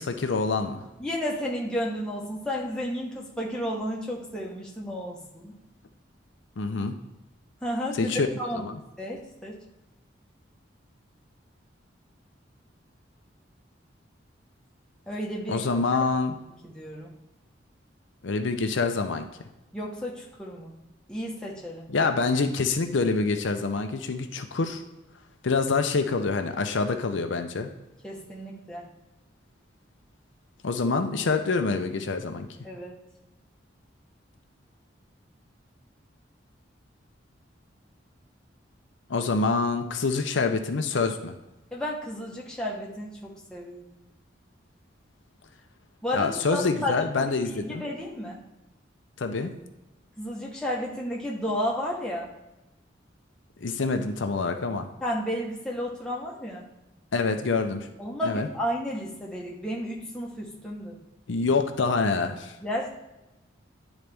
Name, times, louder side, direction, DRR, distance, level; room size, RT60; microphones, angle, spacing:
voice 1, 0.0-0.8 6.6-7.0 8.0-8.3 8.5-8.8 15.5-16.3 18.2-19.3 21.9-24.8 25.4-27.7 30.6-32.5 39.1-41.3 46.1-47.8 49.2-49.5 53.6-54.9 57.1-57.9 58.2-58.5 61.3-62.5, left 4 dB, 75° left, 6 dB, 0.6 m, -26 dB
voice 2, 1.0-5.5 7.6-8.1 8.4-8.7 9.0-9.6 15.1-15.6 16.6-17.1 19.7-20.8 21.1-21.9 28.0-28.9 32.6-33.0 41.7-44.0 46.0-48.4 50.2-52.3 55.0-56.7 58.0-61.0 62.6-62.9, equal, 5° left, -4 dB, 1.0 m, -32 dB
10.0 x 4.0 x 3.4 m, 0.99 s
head